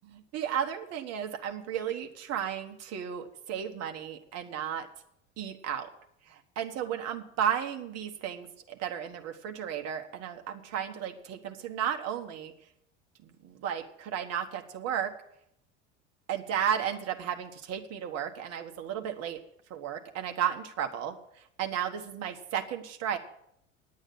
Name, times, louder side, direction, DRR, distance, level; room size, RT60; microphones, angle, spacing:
voice 1, 0.1-4.9 5.4-5.9 6.6-12.5 13.6-15.1 16.3-19.4 19.7-21.1 21.6-23.2, right 9 dB, 40° right, 6 dB, 1.4 m, -33 dB
9.6 x 8.9 x 8.7 m, 0.75 s
figure-of-eight pair, 70°, 37 cm